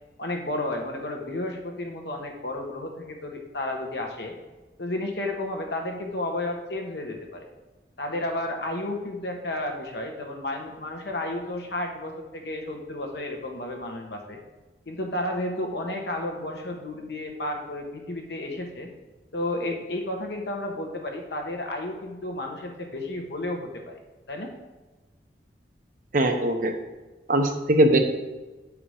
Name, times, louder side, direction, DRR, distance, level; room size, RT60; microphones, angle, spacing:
voice 1, 0.2-4.3 4.8-7.5 8.0-14.4 14.9-18.9 19.3-24.0 24.3-24.5, left 1 dB, 70° left, 2 dB, 1.3 m, -32 dB
voice 2, 26.1-26.8 27.3-28.0, right 1 dB, 50° right, 4 dB, 0.9 m, -20 dB
8.5 x 4.9 x 5.0 m, 1.2 s
head